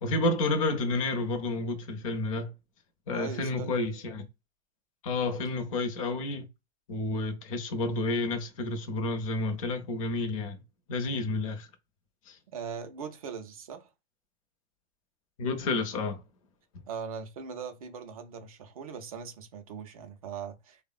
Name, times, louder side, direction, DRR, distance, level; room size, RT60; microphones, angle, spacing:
voice 1, 0.0-2.5 3.1-4.3 5.0-6.4 6.9-10.6 10.9-11.7 12.3-12.4 15.4-16.2, left 2 dB, 30° left, 0.5 m, -30 dB
voice 2, 3.1-3.8 12.5-13.9 16.9-20.8, right 6 dB, 35° right, 0.4 m, -40 dB
3.3 x 2.0 x 2.3 m
hypercardioid pair, 145°, 34 cm